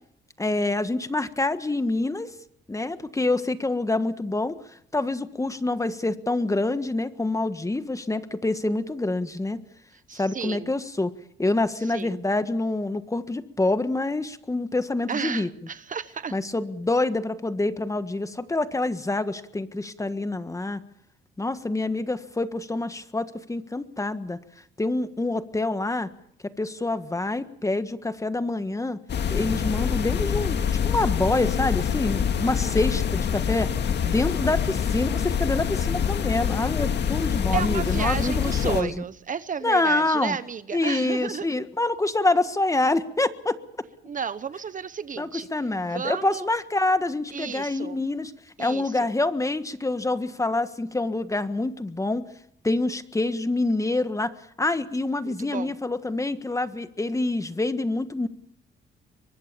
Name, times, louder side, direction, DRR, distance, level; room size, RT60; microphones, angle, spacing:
voice 1, 0.4-2.3 2.7-4.6 4.9-9.6 10.1-11.1 11.4-15.5 16.3-20.8 21.4-24.4 24.8-26.1 26.6-29.0 29.3-33.7 34.1-39.0 39.6-40.4 40.7-43.6 45.2-48.3 48.6-52.2 52.6-54.3 54.6-58.3, left 2 dB, 15° left, 11 dB, 1.5 m, -26 dB
voice 2, 10.1-10.7 11.8-12.2 15.1-16.3 37.5-41.5 44.0-45.5 45.9-46.5 47.3-48.0 48.6-49.1 55.2-55.7, right 6 dB, 40° right, 15 dB, 0.9 m, -32 dB
sound 1, 29.1-38.8, left 8 dB, 60° left, 2.0 m, -25 dB
24.0 x 20.5 x 6.9 m, 0.69 s
cardioid pair, 90°, 20 cm